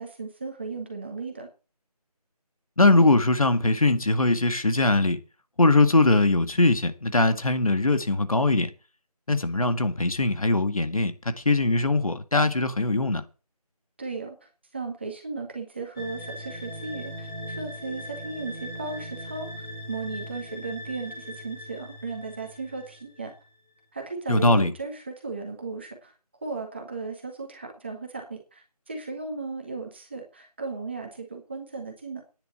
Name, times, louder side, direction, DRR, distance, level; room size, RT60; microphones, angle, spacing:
voice 1, 0.0-1.5 14.0-14.4 14.7-19.5 19.9-23.3 23.9-26.1 26.4-32.2, right 4 dB, 15° right, 1.8 m, -36 dB
voice 2, 2.8-5.2 5.6-8.7 9.3-13.2 24.3-24.7, left 2 dB, 60° left, 1.9 m, -21 dB
sound 1, 16.0-23.5, equal, 5° left, 1.6 m, -39 dB
10.0 x 7.3 x 8.8 m
figure-of-eight pair, 175°, 20 cm